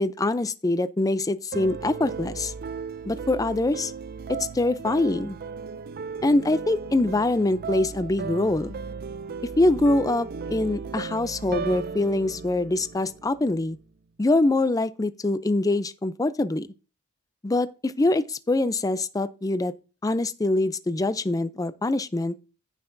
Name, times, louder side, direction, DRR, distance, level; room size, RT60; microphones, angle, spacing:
voice 1, 0.0-2.5 3.1-3.9 4.3-5.4 6.2-8.8 9.6-13.8 14.2-16.7 17.4-19.7 20.0-22.4, left 2 dB, 15° left, 0.4 m, -24 dB
sound 1, 1.5-13.6, right 5 dB, 45° right, 0.4 m, -36 dB
15.5 x 5.7 x 2.6 m
head